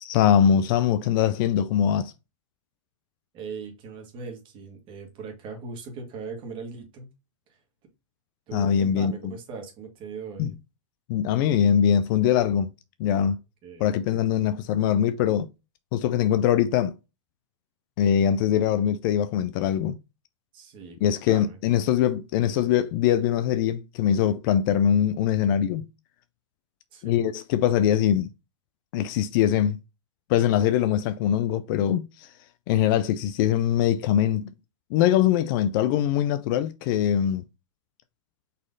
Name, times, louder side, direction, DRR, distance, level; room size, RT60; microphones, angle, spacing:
voice 1, 0.0-2.1 8.5-9.3 10.4-10.5 11.1-12.7 13.0-13.4 13.8-15.5 15.9-16.9 18.0-20.0 21.0-25.8 27.0-28.3 28.9-29.8 30.3-32.3 32.7-34.5 34.9-37.4, left 9 dB, 40° left, 0.4 m, -22 dB
voice 2, 3.3-7.1 8.5-10.5 13.6-14.0 20.5-21.6 26.9-27.2 27.7-27.8, right 5 dB, 30° right, 1.5 m, -39 dB
4.2 x 3.1 x 3.8 m
hypercardioid pair, 135°, 16 cm